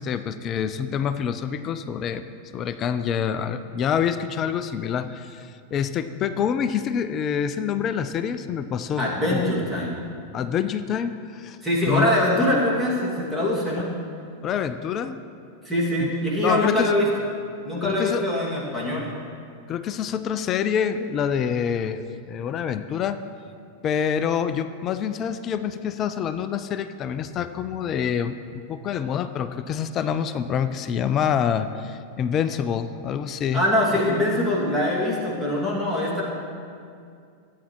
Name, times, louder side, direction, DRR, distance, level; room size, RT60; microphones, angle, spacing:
voice 1, 0.0-2.2 2.5-9.4 10.3-11.6 11.9-12.1 14.4-15.2 16.0-16.1 16.4-16.9 17.8-18.3 19.7-23.2 23.8-33.6, left 8 dB, 30° left, 12 dB, 0.4 m, -26 dB
voice 2, 9.0-10.0 11.6-13.9 15.6-17.1 17.6-19.1 33.5-36.2, left 1 dB, 5° right, -6 dB, 2.3 m, -23 dB
15.5 x 8.4 x 3.1 m, 2.3 s
figure-of-eight pair, 90°, 0 cm